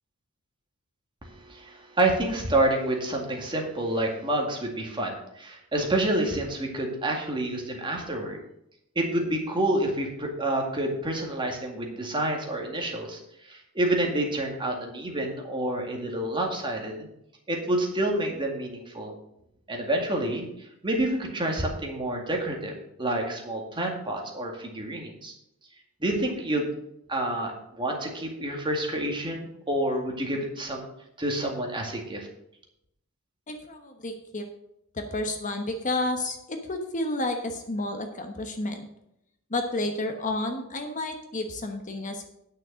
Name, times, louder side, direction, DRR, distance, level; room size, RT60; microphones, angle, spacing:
voice 1, 1.5-8.4 9.0-13.2 13.5-17.1 17.5-19.1 19.7-20.5 20.8-25.3 26.0-26.7 27.1-30.8 31.2-32.3, right 1 dB, 25° right, 1 dB, 2.1 m, -28 dB
voice 2, 33.5-34.4 34.9-38.9 39.5-42.3, left 2 dB, 35° left, 6 dB, 1.1 m, -31 dB
9.6 x 6.4 x 6.3 m, 0.79 s
head